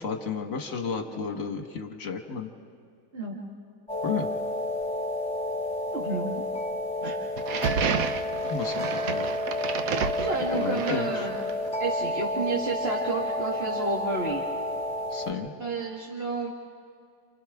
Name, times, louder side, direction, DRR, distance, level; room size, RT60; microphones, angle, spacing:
voice 1, 0.0-2.5 4.0-4.3 8.5-9.3 10.5-11.3 15.1-15.5, left 5 dB, 50° left, 4 dB, 1.7 m, -32 dB
sound 1, 3.9-15.3, left 1 dB, 20° left, 2.8 m, -30 dB
voice 2, 5.9-6.4 7.0-7.2 10.2-11.4 11.8-14.4 15.6-16.5, right 3 dB, 35° right, -3 dB, 1.8 m, -31 dB
sound 2, 7.4-11.7, right 7 dB, 60° right, 1.1 m, -31 dB
29.5 x 29.0 x 3.6 m, 2.3 s
omnidirectional pair, 1.8 m